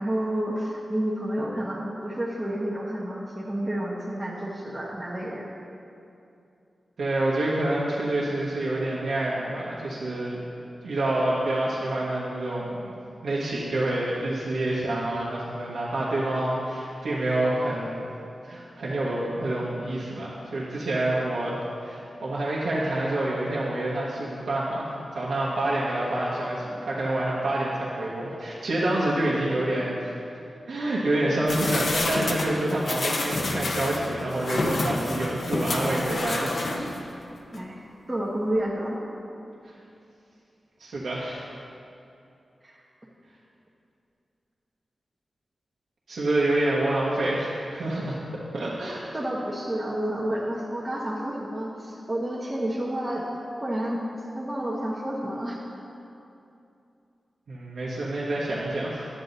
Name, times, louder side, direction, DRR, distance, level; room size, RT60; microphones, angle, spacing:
voice 1, 0.0-5.5 37.5-37.8 38.1-39.0 42.6-42.8 49.1-53.2 53.6-54.0 54.3-55.6, right 1 dB, 25° right, -6 dB, 1.1 m, -30 dB
voice 2, 7.0-10.4 10.8-12.9 13.2-18.0 18.4-21.6 21.8-30.1 30.7-36.9 39.6-39.7 40.8-41.4 46.1-48.2 48.5-49.0 57.5-59.1, right 1 dB, 85° right, -7 dB, 1.2 m, -27 dB
sound 1, 31.5-37.1 37.5-37.6, left 2 dB, 70° left, 0.9 m, -29 dB
10.0 x 7.7 x 4.0 m, 2.7 s
wide cardioid pair, 75°, 0 cm